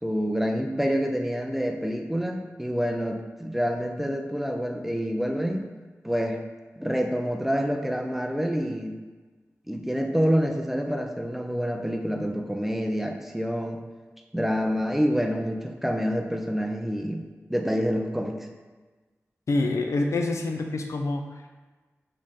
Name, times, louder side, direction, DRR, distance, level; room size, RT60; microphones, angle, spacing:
voice 1, 0.0-5.7 6.0-6.4 6.8-9.0 9.7-13.8 14.3-18.5, equal, 5° right, 3 dB, 0.4 m, -27 dB
voice 2, 19.5-21.5, left 2 dB, 80° left, 4 dB, 0.4 m, -27 dB
4.3 x 3.1 x 3.6 m, 1.3 s
wide cardioid pair, 110°, 5 cm